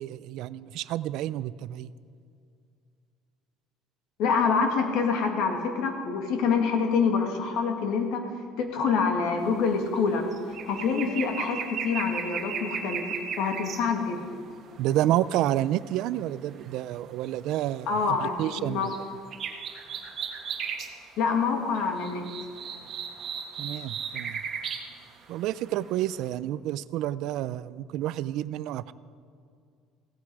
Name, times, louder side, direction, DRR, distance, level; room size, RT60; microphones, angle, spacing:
voice 1, 0.0-1.9 14.8-19.0 23.6-24.4 25.3-28.9, right 13 dB, 60° right, 16 dB, 0.4 m, -29 dB
voice 2, 4.2-8.2 8.6-10.3 10.6-13.0 13.4-14.4 17.9-18.9 21.2-22.3, left 5 dB, 60° left, 4 dB, 2.1 m, -26 dB
sound 1, 9.5-9.7 10.0-13.8 14.6-15.4 17.3-17.5 18.0-19.0 19.3-20.9 21.3-21.4 21.6-24.9 25.3-26.0 26.2-26.3, right 6 dB, 35° right, 1.5 m, -35 dB
16.5 x 14.5 x 4.8 m, 2.4 s
cardioid pair, 165°, 0 cm